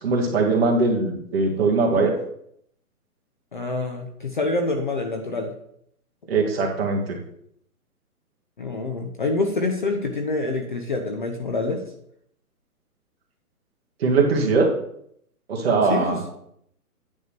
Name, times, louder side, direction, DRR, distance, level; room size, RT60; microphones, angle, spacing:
voice 1, 0.0-2.2 6.3-7.2 14.0-14.7 15.5-16.2, right 3 dB, 40° right, -1 dB, 1.8 m, -21 dB
voice 2, 3.5-5.5 8.6-11.8 15.8-16.2, left 3 dB, 35° left, 4 dB, 0.7 m, -26 dB
9.5 x 3.6 x 6.0 m, 0.71 s
hypercardioid pair, 170°, 46 cm